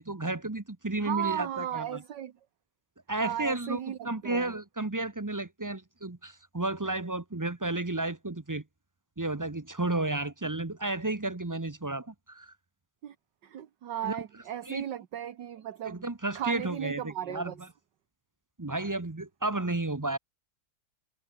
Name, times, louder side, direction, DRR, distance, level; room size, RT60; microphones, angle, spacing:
voice 1, 0.0-2.0 3.1-8.6 9.2-12.5 14.0-14.2 14.7-14.8 15.8-17.5 18.6-20.2, right 2 dB, 15° right, 0.6 m, -32 dB
voice 2, 1.0-2.3 3.2-4.5 13.0-13.2 13.4-16.0 16.4-17.6, right 11 dB, 65° right, 1.8 m, -35 dB
omnidirectional pair, 2.0 m